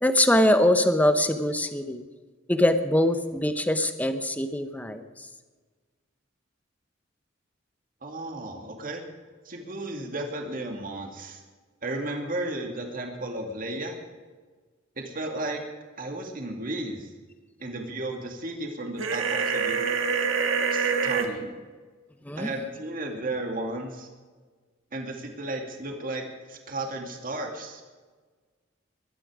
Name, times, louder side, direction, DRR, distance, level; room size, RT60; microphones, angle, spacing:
voice 1, 0.0-2.0 2.5-5.0 22.3-22.5, left 1 dB, 10° left, 9 dB, 1.0 m, -23 dB
voice 2, 8.0-9.0 9.4-11.4 11.8-14.0 15.0-15.6 16.0-17.1 17.6-19.8 20.7-21.6 22.4-24.1 24.9-26.2 26.5-27.8, right 2 dB, 45° right, 2 dB, 2.3 m, -34 dB
sound 1, 19.0-21.3, right 5 dB, 85° right, 1.9 m, -25 dB
21.0 x 13.0 x 5.0 m, 1.4 s
head